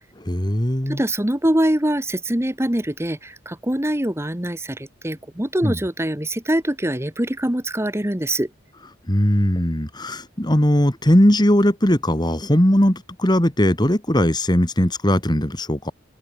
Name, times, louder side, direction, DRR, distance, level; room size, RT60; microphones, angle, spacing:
voice 1, 0.3-1.0 5.6-5.8 9.1-15.9, equal, 20° left, 2.5 m, -19 dB
voice 2, 0.9-8.5, right 1 dB, 15° right, 1.3 m, -23 dB
head